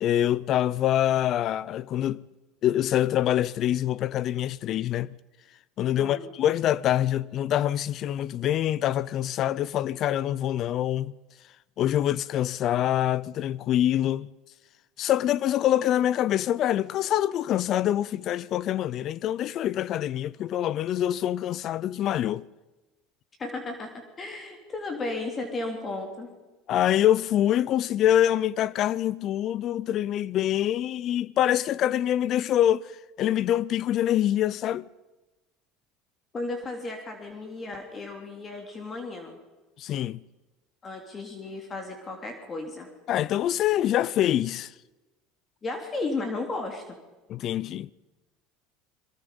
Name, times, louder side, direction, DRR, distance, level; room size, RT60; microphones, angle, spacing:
voice 1, 0.0-2.2 2.6-5.1 5.8-11.1 11.8-14.3 15.0-22.5 26.7-32.9 33.2-34.8 39.8-40.2 43.1-44.7 47.3-47.9, left 12 dB, 50° left, 0.6 m, -25 dB
voice 2, 6.0-6.3 23.4-26.3 36.3-39.4 40.8-42.9 45.6-46.9, left 2 dB, 25° left, 3.1 m, -34 dB
23.0 x 22.0 x 5.4 m
supercardioid pair, 125°, 0 cm